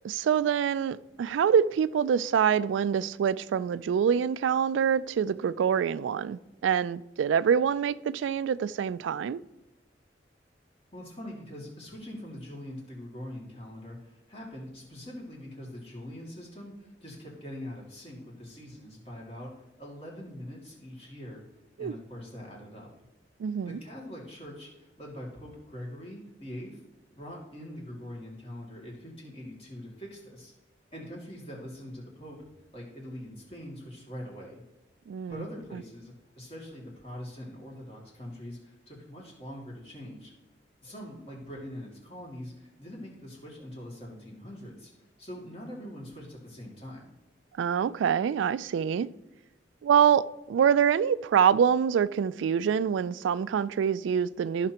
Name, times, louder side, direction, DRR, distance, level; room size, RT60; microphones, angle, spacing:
voice 1, 0.0-9.4 21.8-21.9 23.4-23.8 35.1-35.4 47.6-49.1 49.8-54.7, right 7 dB, 85° right, 0.3 m, -25 dB
voice 2, 10.9-21.4 21.8-22.9 23.6-26.8 27.1-30.5 30.9-32.5 32.7-34.6 35.3-40.3 40.8-44.9 45.2-47.1, equal, 30° left, 2.4 m, -43 dB
14.0 x 5.8 x 2.9 m
head